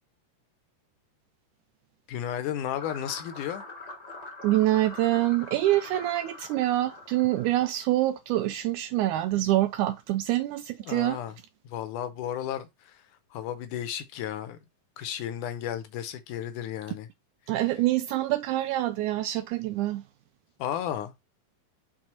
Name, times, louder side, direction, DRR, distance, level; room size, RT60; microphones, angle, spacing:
voice 1, 2.1-3.6 10.8-11.4 11.6-13.0 13.3-14.6 15.0-17.1 20.6-21.1, left 10 dB, 75° left, 2.1 m, -33 dB
sound 1, 2.8-7.8, left 2 dB, 45° left, 0.5 m, -44 dB
voice 2, 4.4-11.2 17.5-20.0, right 15 dB, 85° right, 1.7 m, -26 dB
6.2 x 4.4 x 4.3 m
omnidirectional pair, 3.9 m